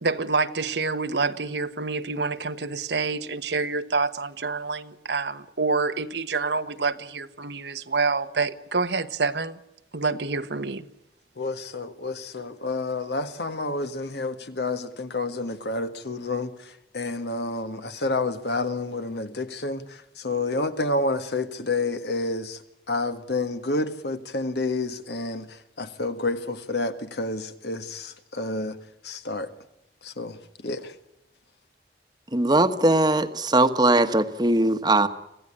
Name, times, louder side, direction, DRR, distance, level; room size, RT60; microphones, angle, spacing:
voice 1, 0.0-9.6 9.9-10.9, right 4 dB, 75° right, 1.1 m, -27 dB
voice 2, 11.4-22.6 22.9-28.8 29.0-29.5 30.0-31.0, left 2 dB, 70° left, 1.7 m, -29 dB
voice 3, 32.3-35.1, right 2 dB, 25° right, 1.2 m, -20 dB
26.0 x 16.0 x 10.0 m
head